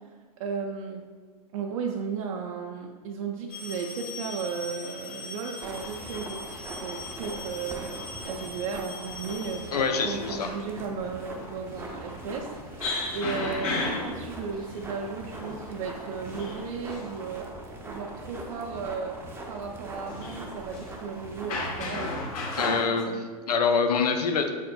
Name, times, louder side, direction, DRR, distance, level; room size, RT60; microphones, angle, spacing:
voice 1, 0.4-1.1 1.5-6.5 6.8-9.7 10.0-12.5 13.1-17.5 17.9-19.2 19.5-22.2 22.5-23.2, right 5 dB, 65° right, 1 dB, 0.4 m, -35 dB
Male speech man speaking, 3.5-17.4 19.9-22.8, left 3 dB, 65° left, 1.1 m, -36 dB
sound 1, 5.6-21.8, right 1 dB, 10° right, 0.5 m, -41 dB
voice 2, 9.7-10.5 22.6-24.5, left 5 dB, 90° left, 6 dB, 0.5 m, -25 dB
4.2 x 4.1 x 2.2 m, 1.5 s
hypercardioid pair, 110°, 20 cm